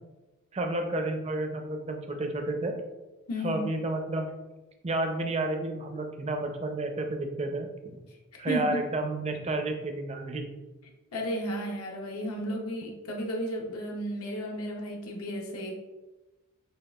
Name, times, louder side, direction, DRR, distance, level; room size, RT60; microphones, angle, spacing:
voice 1, 0.5-2.7 3.4-4.3 4.8-8.0 8.4-10.5, right 2 dB, 30° right, 4 dB, 0.4 m, -31 dB
voice 2, 3.3-3.7 8.3-8.9 11.1-15.7, equal, 85° left, 0 dB, 0.7 m, -33 dB
6.4 x 2.3 x 2.3 m, 1.1 s
head